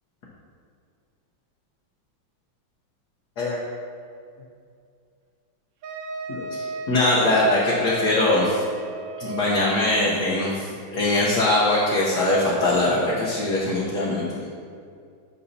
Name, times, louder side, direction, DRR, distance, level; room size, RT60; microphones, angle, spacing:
Wind instrument woodwind instrument, 5.8-9.7, right 3 dB, 75° right, 1.4 m, -34 dB
voice 1, 6.3-8.6 9.2-14.2, left 2 dB, 60° left, -6 dB, 1.5 m, -22 dB
9.7 x 6.5 x 2.8 m, 2.3 s
omnidirectional pair, 2.1 m